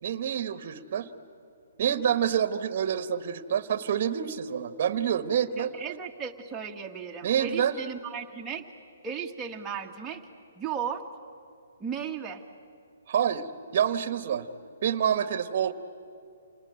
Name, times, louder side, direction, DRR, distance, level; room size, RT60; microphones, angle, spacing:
voice 1, 0.0-1.1 1.8-5.7 7.2-7.8 13.1-13.5 13.7-14.5 14.8-15.7, right 9 dB, 45° right, 13 dB, 1.2 m, -27 dB
voice 2, 5.6-8.6 9.0-10.3 10.6-11.0 11.8-12.4, right 7 dB, 10° right, 0 dB, 1.4 m, -35 dB
27.5 x 19.0 x 9.1 m, 2.5 s
hypercardioid pair, 155°, 0 cm